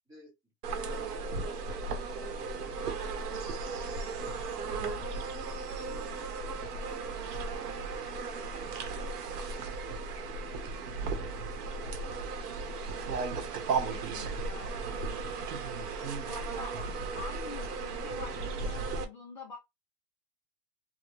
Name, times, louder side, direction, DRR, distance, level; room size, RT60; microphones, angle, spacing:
sound 1, 0.6-19.0, right 4 dB, 75° right, 1.0 m, -36 dB
voice 1, 0.7-3.4 3.7-5.1 5.7-7.5 7.8-11.3 11.8-13.0 13.7-14.0 15.9-16.4, left 1 dB, 5° right, 0.7 m, -57 dB
voice 2, 13.9-15.0 16.3-16.8 17.1-19.6, left 4 dB, 35° left, 0.4 m, -46 dB
2.7 x 2.0 x 3.1 m
supercardioid pair, 170°, 47 cm